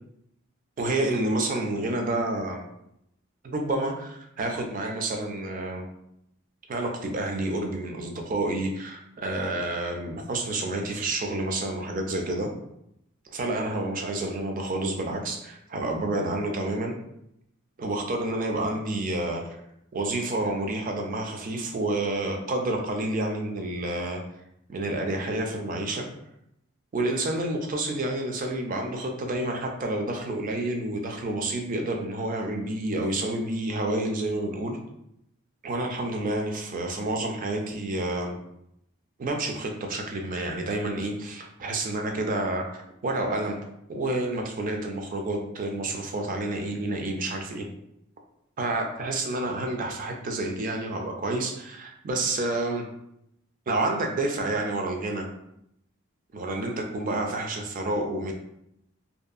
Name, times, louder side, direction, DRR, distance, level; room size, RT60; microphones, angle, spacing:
voice 1, 0.8-2.6 3.4-5.9 6.7-12.5 13.3-17.0 17.8-19.4 19.9-24.2 24.7-26.1 26.9-34.8 35.6-38.4 39.2-43.6 43.9-47.7 48.6-52.9 53.7-55.3 56.3-58.3, right 2 dB, 40° right, 3 dB, 0.4 m, -29 dB
2.6 x 2.2 x 2.4 m, 0.79 s
head